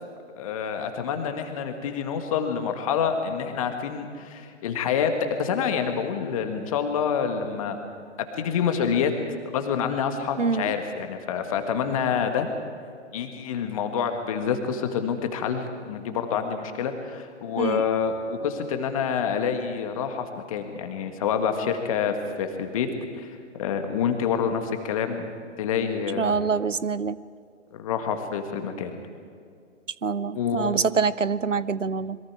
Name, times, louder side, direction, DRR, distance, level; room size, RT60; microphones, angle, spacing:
voice 1, 0.3-7.8 8.2-9.1 9.5-12.5 13.1-22.9 23.1-25.3 25.6-26.4 27.7-29.0 30.3-30.7, left 7 dB, 30° left, 6 dB, 1.8 m, -27 dB
voice 2, 10.4-10.7 17.6-17.8 26.2-27.2 30.0-32.2, right 5 dB, 80° right, 18 dB, 0.8 m, -25 dB
26.5 x 22.5 x 4.8 m, 2.3 s
figure-of-eight pair, 135°, 37 cm